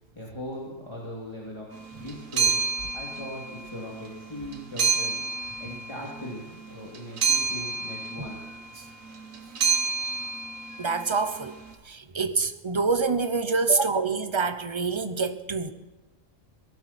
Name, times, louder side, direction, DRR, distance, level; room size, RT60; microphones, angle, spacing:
voice 1, 0.1-1.7 2.0-2.6 2.9-5.3 5.6-8.5, equal, 20° left, 2.9 m, -39 dB
sound 1, 1.7-11.7, right 5 dB, 80° right, 1.8 m, -29 dB
voice 2, 10.8-11.5 11.8-15.7, right 4 dB, 25° right, 0.9 m, -26 dB
18.5 x 12.0 x 4.4 m
omnidirectional pair, 1.4 m